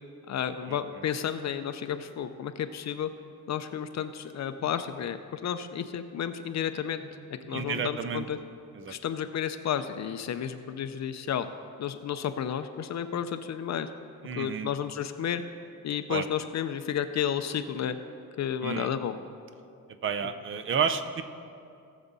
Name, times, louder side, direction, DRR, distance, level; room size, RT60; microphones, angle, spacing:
voice 1, 0.3-3.1 3.5-7.0 7.5-8.4 8.9-11.5 11.8-13.9 14.4-15.4 15.8-18.0 18.4-19.1, left 9 dB, 50° left, 10 dB, 0.5 m, -32 dB
voice 2, 7.4-8.3 8.7-9.0 14.2-14.7 16.1-16.2 18.6-18.9 20.0-21.2, right 6 dB, 35° right, 11 dB, 0.5 m, -31 dB
17.5 x 7.2 x 4.0 m, 2.5 s
cardioid pair, 155°, 37 cm